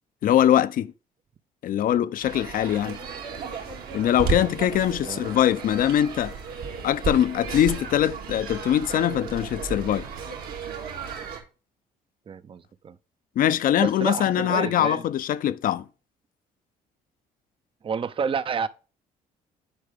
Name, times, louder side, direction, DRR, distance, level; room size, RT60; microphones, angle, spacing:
voice 1, 0.2-0.9 1.6-3.0 3.9-6.3 6.8-10.1 13.4-15.8, left 11 dB, 60° left, 0.6 m, -22 dB
sound 1, 2.2-11.4, right 5 dB, 75° right, 2.0 m, -34 dB
voice 2, 12.3-13.0 13.8-15.0 17.8-18.7, right 6 dB, 35° right, 0.6 m, -29 dB
9.9 x 4.6 x 3.4 m
cardioid pair, 90°, 16 cm